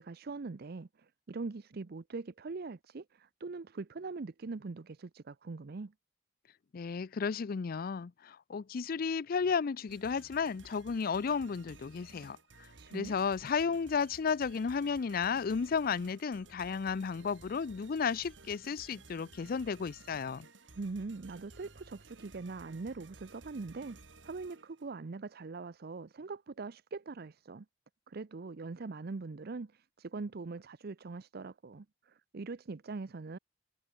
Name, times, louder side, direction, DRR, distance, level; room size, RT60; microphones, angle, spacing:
voice 1, 0.0-5.9 12.8-13.2 20.7-24.0 24.2-27.7 28.1-33.4, right 3 dB, 55° right, 0.6 m, -42 dB
voice 2, 6.7-20.5, left 5 dB, 50° left, 0.4 m, -33 dB
sound 1, 9.9-24.9, right 3 dB, 75° right, 3.3 m, -56 dB
head